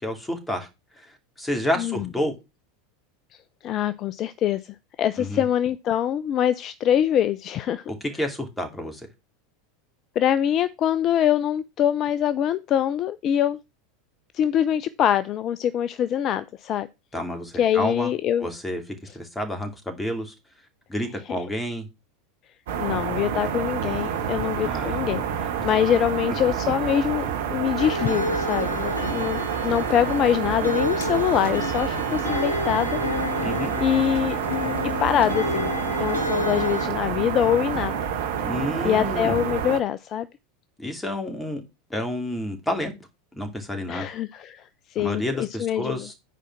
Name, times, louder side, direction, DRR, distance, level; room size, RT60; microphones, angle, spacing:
voice 1, 0.0-0.7 1.0-1.1 1.4-2.3 5.2-5.4 8.2-9.0 17.1-18.1 18.4-18.8 19.1-20.3 20.9-21.9 24.6-25.1 33.4-33.7 38.4-39.4 40.8-41.6 41.9-42.9 43.4-44.1 45.0-46.1, left 1 dB, 10° left, 2.6 m, -29 dB
voice 2, 1.8-2.1 3.6-7.8 10.2-13.6 14.3-16.9 17.6-18.5 21.3-21.4 22.8-33.0 33.8-34.4 35.0-35.7 36.0-38.0 38.8-40.3 43.9-46.1, left 10 dB, 40° left, 0.5 m, -24 dB
sound 1, 22.7-39.8, right 8 dB, 65° right, 1.5 m, -28 dB
sound 2, 27.8-36.9, left 2 dB, 75° left, 1.8 m, -30 dB
9.1 x 4.9 x 5.9 m
figure-of-eight pair, 85°, 0 cm